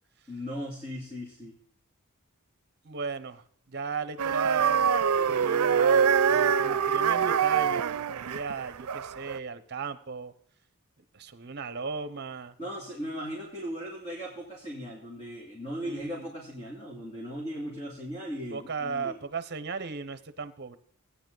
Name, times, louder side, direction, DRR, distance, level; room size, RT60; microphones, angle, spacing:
voice 1, 0.3-1.6 12.6-19.2, equal, 30° left, -3 dB, 2.4 m, -38 dB
voice 2, 2.8-10.3 11.1-12.5 15.8-16.3 18.5-20.8, right 5 dB, 50° right, 12 dB, 0.8 m, -36 dB
sound 1, 4.2-9.4, right 7 dB, 90° right, 0.5 m, -24 dB
16.0 x 9.8 x 4.0 m, 0.64 s
head